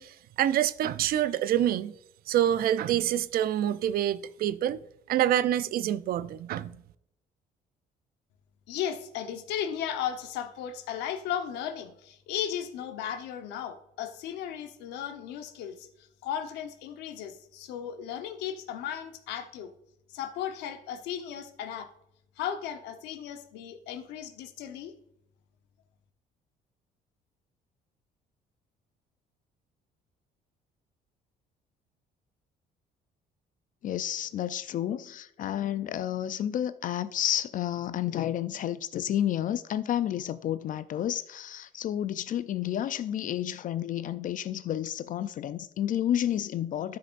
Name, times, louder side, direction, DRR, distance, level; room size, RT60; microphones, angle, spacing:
voice 1, 0.0-1.9 2.3-6.8, right 11 dB, 60° right, 0.5 m, -27 dB
voice 2, 8.7-15.9 16.2-19.7 20.1-21.9 22.4-24.9, left 9 dB, 90° left, 1.0 m, -35 dB
voice 3, 33.8-47.0, left 11 dB, 50° left, 0.4 m, -31 dB
12.5 x 6.6 x 2.5 m
cardioid pair, 110°, 17 cm